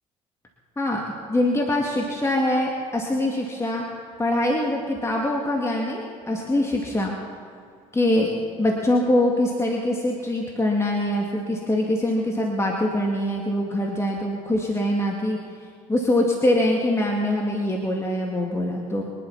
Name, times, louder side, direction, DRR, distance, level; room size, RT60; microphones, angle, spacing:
voice 1, 1.3-3.8 4.2-7.1 7.9-8.3 8.6-15.4 15.9-19.0, left 1 dB, 15° left, -1 dB, 2.3 m, -23 dB
24.5 x 11.5 x 4.3 m, 2.2 s
hypercardioid pair, 60°, 18 cm